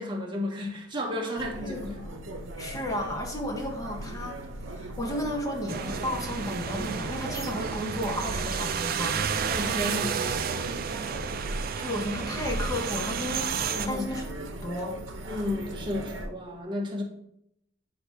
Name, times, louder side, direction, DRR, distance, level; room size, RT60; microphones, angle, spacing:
voice 1, 0.0-2.0 9.5-10.2 10.5-10.8 13.7-14.0 15.3-17.0, left 1 dB, 25° right, 0 dB, 1.1 m, -33 dB
sound 1, 1.4-16.3, right 1 dB, 80° right, 0.8 m, -38 dB
voice 2, 1.6-2.2 2.6-4.4 4.7-9.2 11.8-13.6 13.9-14.2 14.6-15.0, left 1 dB, 20° left, 1 dB, 1.0 m, -33 dB
sound 2, 5.7-13.9, right 7 dB, 50° right, 0.4 m, -31 dB
8.5 x 2.9 x 4.6 m, 0.77 s
head